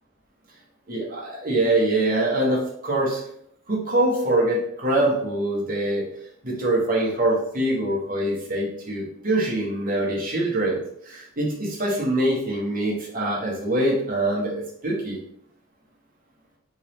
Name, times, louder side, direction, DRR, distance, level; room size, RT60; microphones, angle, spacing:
voice 1, 0.9-3.2 3.7-6.0 6.4-15.2, right 1 dB, 40° right, -3 dB, 1.1 m, -24 dB
3.6 x 2.9 x 3.1 m, 0.72 s
head